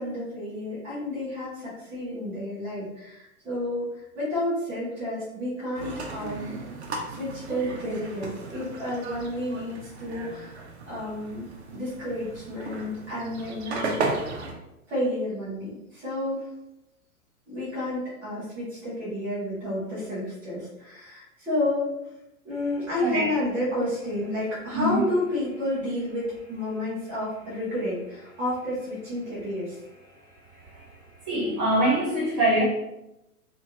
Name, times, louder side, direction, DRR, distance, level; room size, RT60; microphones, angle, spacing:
voice 1, 0.0-6.6 7.1-10.6 10.9-14.3 14.9-16.5 17.5-21.9 22.4-29.8, left 1 dB, 5° right, -10 dB, 0.4 m, -31 dB
sound 1, 5.8-14.5, right 3 dB, 45° right, 0.6 m, -35 dB
voice 2, 24.7-25.0 30.6-30.8 31.2-32.6, right 1 dB, 25° right, -5 dB, 1.1 m, -24 dB
3.0 x 2.4 x 2.9 m, 0.90 s
figure-of-eight pair, 110°, 45 cm